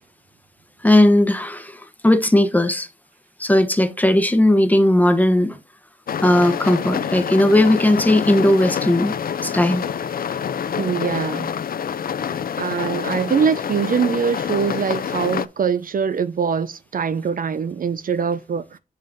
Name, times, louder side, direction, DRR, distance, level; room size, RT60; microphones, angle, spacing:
voice 1, 0.8-2.9 3.4-5.6 6.2-9.8, left 1 dB, 10° left, 0.8 m, -17 dB
sound 1, 6.1-15.5, left 8 dB, 65° left, 0.4 m, -27 dB
voice 2, 10.8-11.5 12.6-18.8, right 6 dB, 60° right, 0.4 m, -23 dB
7.4 x 5.4 x 2.6 m
wide cardioid pair, 100°, 16 cm